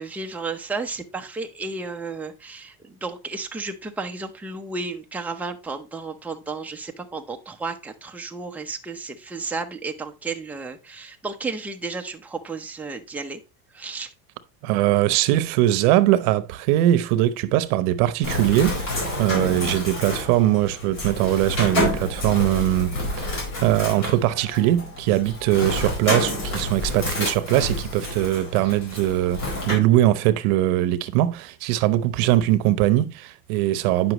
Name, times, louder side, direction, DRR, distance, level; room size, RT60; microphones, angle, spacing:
voice 1, 0.0-13.4 13.7-14.1, right 3 dB, 5° right, 0.7 m, -33 dB
voice 2, 14.6-34.1, right 14 dB, 85° right, 0.9 m, -21 dB
Bird, 18.2-29.7, left 1 dB, 50° left, 4.8 m, -29 dB
9.2 x 5.9 x 3.0 m
cardioid pair, 130°, 43 cm